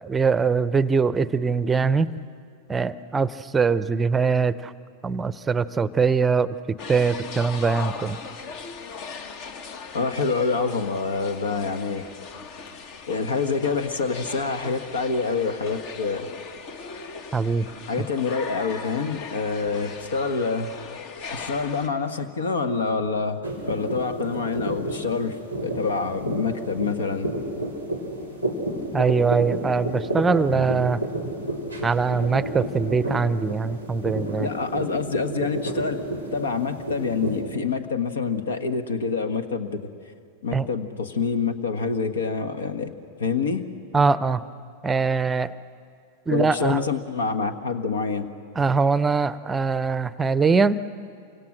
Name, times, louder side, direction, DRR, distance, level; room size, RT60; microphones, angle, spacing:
voice 1, 0.0-2.1 2.7-4.7 5.0-6.6 6.9-8.2 17.3-17.7 18.0-18.1 28.9-31.0 31.8-34.5 40.5-40.7 43.9-44.4 44.8-45.5 46.3-46.8 48.6-50.8, right 5 dB, 15° right, 16 dB, 0.7 m, -22 dB
sound 1, 6.8-21.9, left 5 dB, 45° left, 1.4 m, -38 dB
voice 2, 9.9-12.1 13.1-16.3 17.9-20.7 21.3-27.3 34.4-36.0 36.3-39.8 40.4-42.9 43.2-43.6 46.3-48.3, left 4 dB, 65° left, 10 dB, 1.5 m, -26 dB
sound 2, 23.4-37.4, right 1 dB, 90° left, 4.5 m, -31 dB
28.0 x 25.5 x 6.4 m, 2.4 s
figure-of-eight pair, 90°, 0 cm